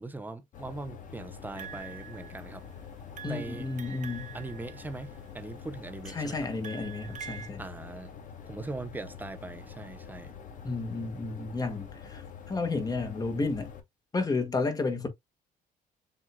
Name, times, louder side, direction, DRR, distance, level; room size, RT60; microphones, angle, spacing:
voice 1, 0.0-2.6 3.3-3.7 4.3-5.1 5.3-6.4 7.6-8.1 8.4-10.3, right 2 dB, 10° right, 0.8 m, -40 dB
sound 1, 0.5-13.8, left 6 dB, 50° left, 1.3 m, -46 dB
sound 2, 1.5-2.7 3.1-5.4 6.0-7.5, right 8 dB, 50° right, 0.9 m, -46 dB
voice 2, 3.2-4.3 6.1-7.7 10.6-12.2 12.5-13.7 14.1-15.1, left 3 dB, 20° left, 1.5 m, -32 dB
7.4 x 2.8 x 2.2 m
cardioid pair, 110°, 17 cm